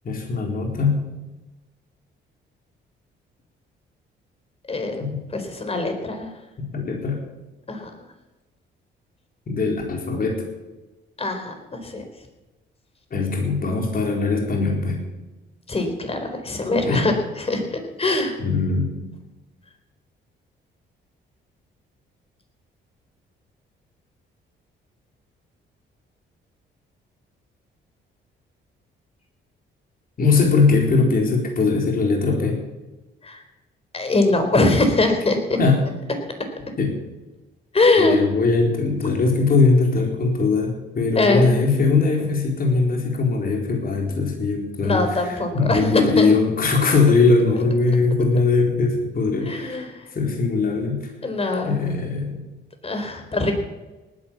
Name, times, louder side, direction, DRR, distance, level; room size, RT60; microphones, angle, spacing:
voice 1, 0.0-1.1 5.0-5.2 6.7-7.2 9.5-10.4 13.1-15.0 16.8-17.1 18.4-19.0 30.2-32.6 35.6-35.8 36.8-37.0 38.0-49.9 50.1-51.1 51.6-52.5, left 4 dB, 45° left, 1 dB, 4.1 m, -20 dB
voice 2, 4.7-6.3 7.7-7.9 11.2-11.5 11.8-12.0 15.7-18.4 33.2-33.4 33.9-35.6 37.7-38.2 41.2-41.6 44.8-46.3 49.4-50.0 51.2-51.8 52.8-53.5, left 2 dB, 30° left, 6 dB, 4.2 m, -22 dB
19.0 x 10.0 x 7.3 m, 1.1 s
cardioid pair, 90°, 20 cm